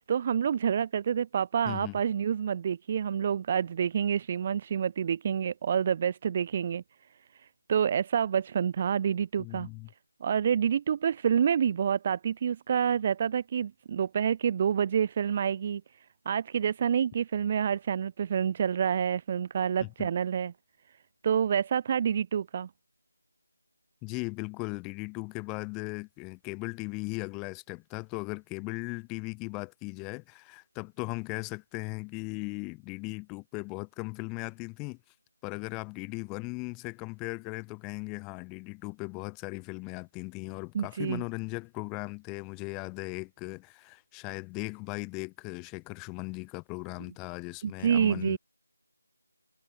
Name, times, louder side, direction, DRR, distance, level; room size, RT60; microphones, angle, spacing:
voice 1, 0.1-6.8 7.7-9.7 10.2-15.8 16.3-20.5 21.2-22.7 40.7-41.2 47.6-48.4, right 8 dB, 25° right, 0.5 m, -28 dB
voice 2, 1.6-2.0 9.4-9.9 19.8-20.1 24.0-35.0 35.4-48.4, left 29 dB, 10° left, 1.6 m, -38 dB
figure-of-eight pair, 165°, 0 cm